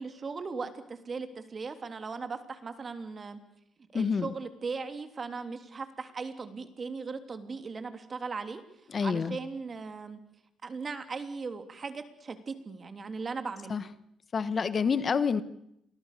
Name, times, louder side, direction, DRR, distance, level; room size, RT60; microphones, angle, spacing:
voice 1, 0.0-3.4 3.9-8.6 9.0-10.2 10.6-13.8, right 4 dB, 40° right, 8 dB, 3.2 m, -38 dB
voice 2, 3.9-4.3 8.9-9.4 13.7-13.8 14.3-15.4, left 5 dB, 40° left, 14 dB, 1.4 m, -27 dB
30.0 x 23.5 x 6.8 m, 0.78 s
cardioid pair, 90°, 0 cm